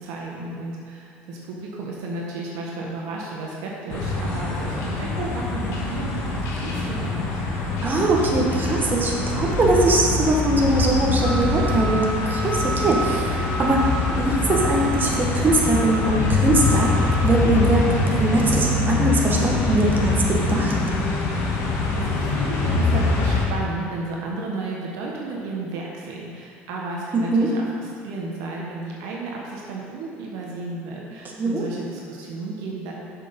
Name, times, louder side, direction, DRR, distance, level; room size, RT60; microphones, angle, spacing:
voice 1, 0.0-7.4 21.9-32.9, right 2 dB, 70° right, -3 dB, 1.3 m, -33 dB
sound 1, 3.9-23.5, left 2 dB, 60° left, 1.4 m, -24 dB
voice 2, 7.8-13.8 14.1-20.8 27.1-27.5 31.4-31.6, right 2 dB, 30° right, -2 dB, 1.5 m, -21 dB
6.8 x 5.9 x 5.4 m, 2.3 s
hypercardioid pair, 75°, 6 cm